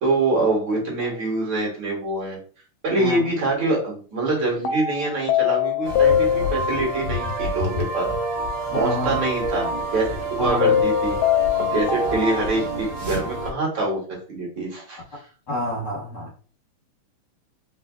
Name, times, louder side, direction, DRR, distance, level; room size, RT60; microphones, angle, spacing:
voice 1, 0.0-2.4 2.8-8.1 8.7-10.1 10.4-11.1 11.7-14.0 14.3-15.0, right 2 dB, 45° right, -3 dB, 1.9 m, -24 dB
sound 1, 1.0-1.2 4.7-7.0 10.6-12.6, left 9 dB, 75° left, 1.8 m, -22 dB
voice 2, 3.0-3.3 8.7-9.2 10.4-10.8 15.5-16.3, left 1 dB, 45° left, -4 dB, 1.6 m, -28 dB
sound 2, 5.8-13.5, right 1 dB, 85° right, 1.0 m, -28 dB
4.2 x 4.1 x 2.3 m, 0.40 s
omnidirectional pair, 3.6 m